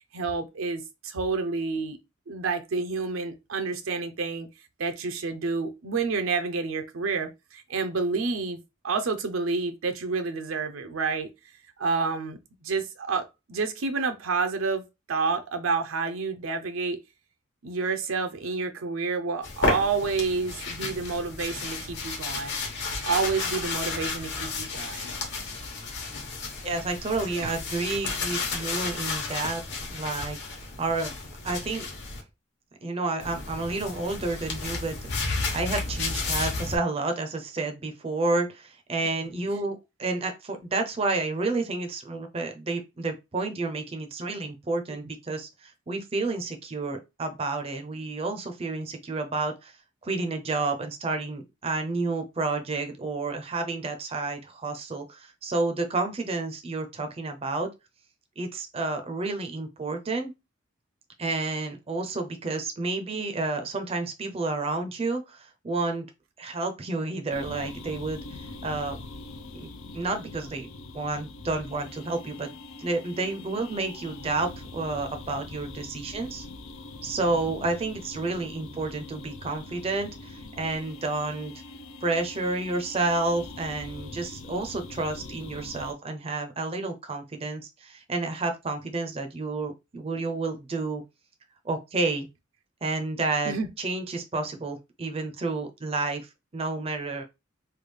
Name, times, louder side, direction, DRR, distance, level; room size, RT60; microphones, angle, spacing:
voice 1, 0.1-2.0 2.3-4.5 4.8-8.6 8.8-11.3 11.8-17.0 17.6-22.6 23.0-25.1 27.4-27.5 77.5-77.6 93.5-93.7, right 4 dB, 80° right, 0.6 m, -29 dB
sound 1, 19.4-32.2 33.2-36.8, left 3 dB, 55° left, 1.0 m, -32 dB
voice 2, 26.6-31.1 31.4-31.8 32.8-35.0 35.3-49.8 50.0-57.7 58.4-60.3 61.2-66.1 66.4-68.2 68.6-69.0 69.5-72.5 72.8-76.4 77.0-81.5 82.0-91.0 91.6-92.3 92.8-97.2, right 3 dB, 30° right, 0.5 m, -30 dB
sound 2, 67.3-85.9, left 2 dB, 75° left, 0.5 m, -43 dB
3.3 x 2.3 x 3.2 m
head